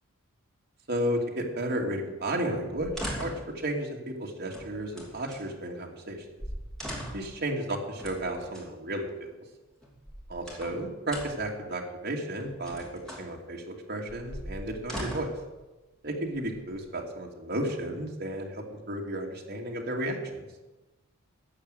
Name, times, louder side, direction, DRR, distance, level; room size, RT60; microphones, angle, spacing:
voice 1, 0.9-6.2 7.1-9.3 10.3-12.8 13.2-15.3 16.0-20.5, right 1 dB, 50° right, 0 dB, 2.5 m, -33 dB
sound 1, 2.7-3.5 4.5-5.4 6.1-6.2 6.4-7.3 8.0-8.7 9.8-10.8 11.1-11.5 12.4-13.3 14.1-15.4 16.3-17.0, equal, ahead, 2.9 m, -39 dB
14.0 x 9.0 x 8.0 m, 1.1 s
head